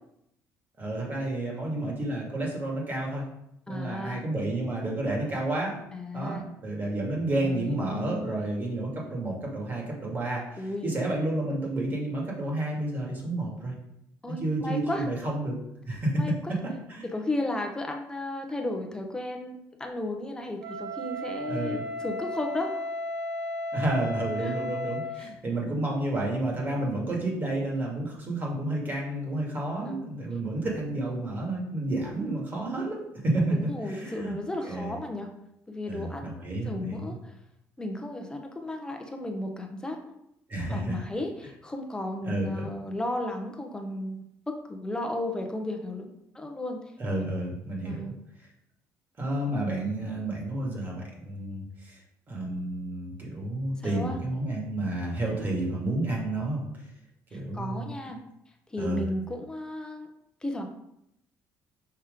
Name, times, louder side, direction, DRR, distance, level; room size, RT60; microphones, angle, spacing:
voice 1, 0.8-3.2 3.7-5.8 6.1-13.7 14.4-15.6 15.9-16.2 16.5-17.1 21.5-21.8 23.7-33.0 33.2-33.5 33.9-34.3 34.6-34.9 35.9-37.2 40.5-41.0 42.2-42.7 47.0-48.1 49.2-52.0 52.3-56.6 57.3-57.9 58.8-59.1, right 2 dB, 30° right, -2 dB, 1.9 m, -30 dB
voice 2, 3.7-4.2 5.9-6.5 7.4-8.5 10.6-10.9 14.2-15.1 16.1-16.5 17.0-22.8 24.4-24.6 25.2-25.3 29.9-30.1 33.5-35.3 35.7-36.3 36.6-37.3 37.8-40.1 40.7-46.8 47.8-48.1 53.8-54.2 57.3-58.2 58.7-60.1 60.4-60.7, left 1 dB, 10° left, 3 dB, 0.9 m, -34 dB
Wind instrument woodwind instrument, 20.6-25.2, left 1 dB, 75° right, 0.9 m, -34 dB
5.8 x 3.2 x 5.0 m, 0.79 s
cardioid pair, 120°, 6 cm